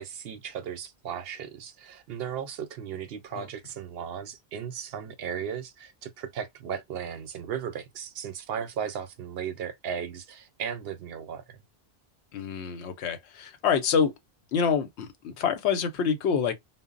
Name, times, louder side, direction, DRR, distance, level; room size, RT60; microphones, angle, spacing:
voice 1, 0.0-11.6, right 8 dB, 70° right, 0.7 m, -36 dB
voice 2, 12.3-14.1 14.5-16.6, left 6 dB, 85° left, 0.9 m, -27 dB
2.0 x 2.0 x 3.6 m
omnidirectional pair, 1.1 m